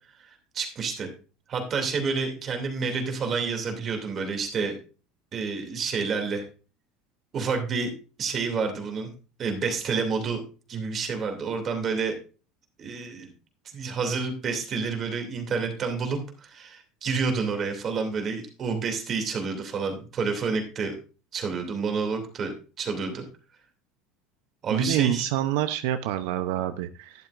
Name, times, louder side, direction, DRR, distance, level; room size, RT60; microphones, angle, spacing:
voice 1, 0.2-1.1 1.5-4.8 5.3-6.5 7.3-7.9 8.2-9.1 9.4-10.4 10.7-12.1 12.8-13.3 13.7-21.0 21.3-23.2 24.6-25.3, right 5 dB, 30° right, 4 dB, 2.6 m, -29 dB
voice 2, 24.7-27.3, right 13 dB, 75° right, 9 dB, 0.7 m, -27 dB
12.0 x 11.0 x 2.5 m, 0.35 s
cardioid pair, 150°, 0 cm